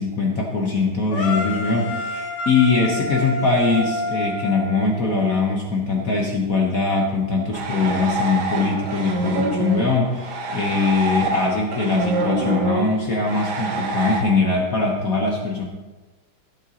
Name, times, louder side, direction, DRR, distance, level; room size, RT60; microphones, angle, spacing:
voice 1, 0.0-15.6, left 3 dB, 50° left, 0 dB, 1.4 m, -22 dB
sound 1, 1.1-5.2, left 2 dB, 70° left, 2.4 m, -28 dB
sound 2, 7.5-14.2, right 3 dB, 70° right, 2.0 m, -26 dB
15.5 x 7.8 x 3.0 m, 1.2 s
omnidirectional pair, 2.3 m